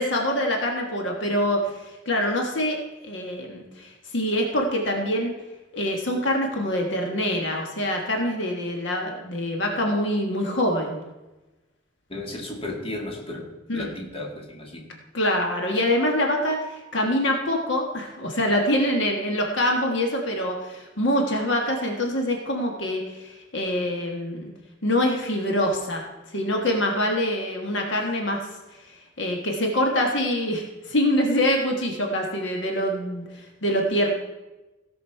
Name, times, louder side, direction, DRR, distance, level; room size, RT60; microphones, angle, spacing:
voice 1, 0.0-5.3 5.7-11.0 13.7-13.9 15.1-24.5 24.8-28.4 28.9-34.1, left 1 dB, 65° left, 1 dB, 1.5 m, -25 dB
voice 2, 12.1-14.9, left 1 dB, 30° left, -1 dB, 1.9 m, -34 dB
17.0 x 6.3 x 4.6 m, 1.1 s
head